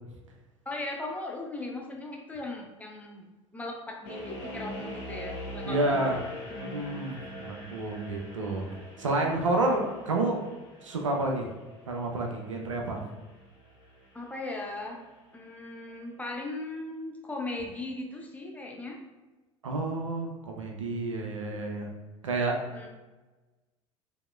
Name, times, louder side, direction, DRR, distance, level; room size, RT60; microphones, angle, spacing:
voice 1, 0.7-3.2 3.5-7.1 14.1-15.0 15.3-19.0 22.7-22.9, left 2 dB, 10° left, -1 dB, 0.7 m, -38 dB
sound 1, 4.1-15.1, equal, 55° left, 1.0 m, -44 dB
voice 2, 5.7-6.2 6.6-8.7 9.0-10.4 10.8-11.5 11.9-13.0 19.6-21.9 22.2-22.6, right 2 dB, 80° right, 1 dB, 0.6 m, -29 dB
4.9 x 2.8 x 2.2 m, 1.2 s
figure-of-eight pair, 70°, 16 cm